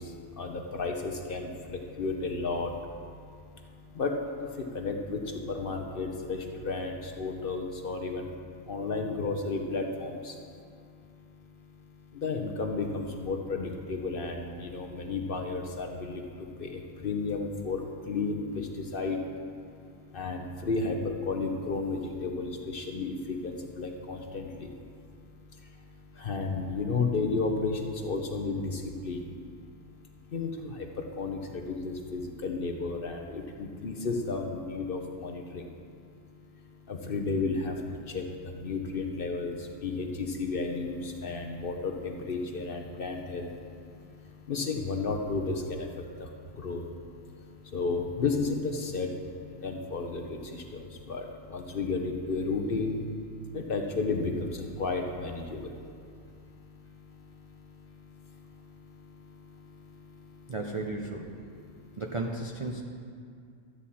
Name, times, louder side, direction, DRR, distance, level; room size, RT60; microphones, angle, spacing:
voice 1, 0.0-60.5 61.4-62.0, left 3 dB, 45° left, 3 dB, 0.9 m, -34 dB
voice 2, 60.5-61.3 62.0-62.8, right 2 dB, 55° right, 1 dB, 0.3 m, -34 dB
12.5 x 9.1 x 4.2 m, 2.3 s
omnidirectional pair, 1.5 m